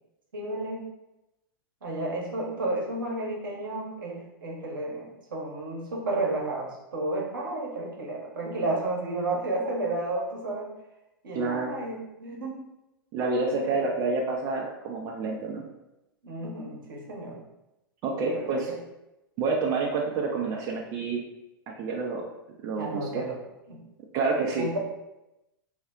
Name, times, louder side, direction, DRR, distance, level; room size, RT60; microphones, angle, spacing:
voice 1, 0.3-0.9 1.8-10.7 11.2-12.6 13.5-13.8 16.2-17.4 18.1-18.8 22.8-23.4 23.7-23.8 24.6-24.8, right 2 dB, 70° right, -1 dB, 0.8 m, -32 dB
voice 2, 11.3-11.7 13.1-15.6 18.0-18.7 19.4-21.2 21.8-22.3 22.6-23.2 24.1-24.7, right 3 dB, 30° right, -1 dB, 0.4 m, -28 dB
2.4 x 2.1 x 3.6 m, 0.93 s
figure-of-eight pair, 100°, 12 cm